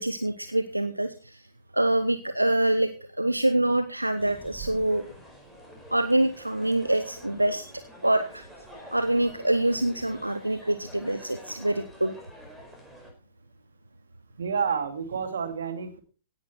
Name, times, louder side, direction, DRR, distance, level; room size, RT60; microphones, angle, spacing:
voice 1, 0.0-1.4 1.7-2.9 3.2-5.1 5.9-7.7 8.0-8.5 8.9-12.1, right 1 dB, 85° right, 10 dB, 1.0 m, -25 dB
sound 1, 4.2-13.1, right 2 dB, 5° right, 5.0 m, -47 dB
voice 2, 14.4-16.0, right 6 dB, 60° right, 8 dB, 2.3 m, -29 dB
17.0 x 10.5 x 4.4 m, 0.36 s
figure-of-eight pair, 105°, 0 cm